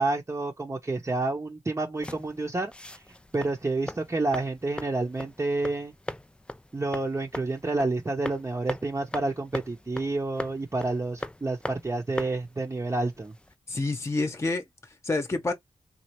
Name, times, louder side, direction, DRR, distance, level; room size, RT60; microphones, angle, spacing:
voice 1, 0.0-3.0 3.3-5.9 6.7-13.3, right 2 dB, 25° right, 0.8 m, -29 dB
sound 1, 2.0-13.5, left 1 dB, 10° left, 0.3 m, -41 dB
voice 2, 13.7-15.5, left 2 dB, 25° left, 0.9 m, -29 dB
4.2 x 2.4 x 3.0 m
wide cardioid pair, 85°, 11 cm